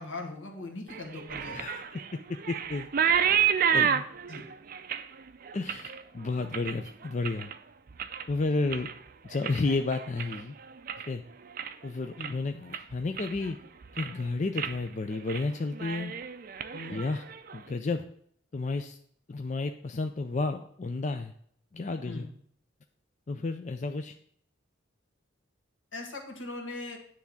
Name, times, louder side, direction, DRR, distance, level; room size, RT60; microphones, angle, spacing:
voice 1, 0.0-1.7 4.3-4.5 12.2-12.4 16.7-17.0 22.1-22.3 25.9-27.0, left 2 dB, 75° left, 2 dB, 1.8 m, -40 dB
sound 1, 0.9-7.6 7.9-8.4 8.7-11.1 11.4-11.9 12.2-12.3 12.7-13.5 13.8-14.2 14.6-14.8 15.1-15.5 15.7-17.6, right 8 dB, 45° right, 0.4 m, -31 dB
voice 2, 1.5-2.9 3.7-4.0 5.5-7.5 8.3-8.9 9.2-10.5 11.1-11.2 11.8-13.6 13.9-16.1 16.9-17.2 17.5-18.1 18.5-19.0 19.3-21.3 21.7-22.3 23.3-24.2, left 3 dB, 35° left, 6 dB, 0.4 m, -32 dB
9.7 x 3.5 x 7.0 m, 0.63 s
head